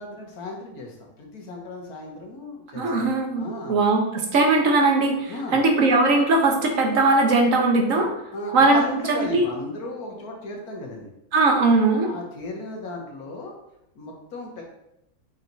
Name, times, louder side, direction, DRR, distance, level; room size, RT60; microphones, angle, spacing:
voice 1, 0.0-3.8 5.3-5.6 8.3-11.1 12.1-13.5 14.0-14.6, left 2 dB, 85° left, 0 dB, 1.7 m, -35 dB
voice 2, 2.7-8.1 8.5-8.8 9.1-9.5 11.3-12.1, right 3 dB, 65° right, 2 dB, 1.4 m, -20 dB
5.8 x 4.4 x 4.0 m, 0.83 s
omnidirectional pair, 1.5 m